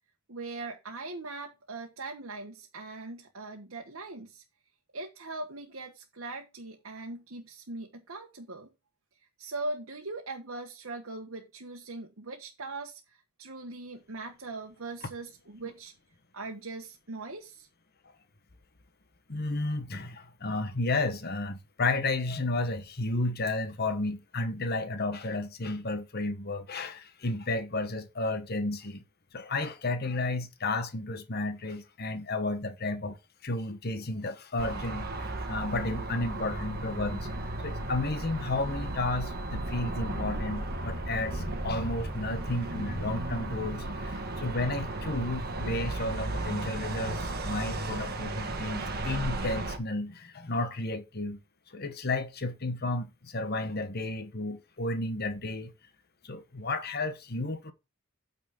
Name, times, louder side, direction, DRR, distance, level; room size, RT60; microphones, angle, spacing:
voice 1, 0.3-4.4 4.9-8.7 9.4-15.9 16.3-17.7, right 2 dB, 70° right, 1.3 m, -40 dB
voice 2, 19.3-29.0 29.3-33.2 33.4-35.1 35.5-37.3 37.6-51.4 51.7-55.7 56.2-57.7, left 2 dB, 45° left, 1.2 m, -32 dB
sound 1, 34.6-49.8, right 2 dB, 45° right, 1.5 m, -35 dB
9.3 x 4.1 x 6.5 m
head